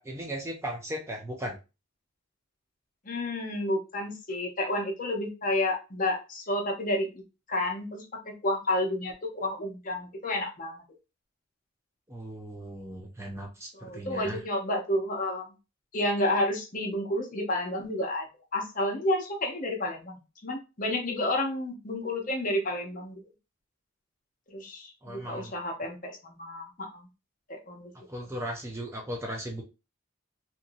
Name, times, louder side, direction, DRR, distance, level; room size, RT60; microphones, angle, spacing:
voice 1, 0.0-1.6 12.1-14.4 25.0-25.6 28.1-29.6, right 1 dB, 15° right, 1 dB, 0.5 m, -37 dB
voice 2, 3.0-7.2 7.5-10.8 13.8-15.5 15.9-18.3 18.5-23.2 24.5-27.1 27.5-27.9, left 1 dB, 40° left, 2 dB, 0.7 m, -30 dB
2.9 x 2.6 x 2.6 m, 0.29 s
head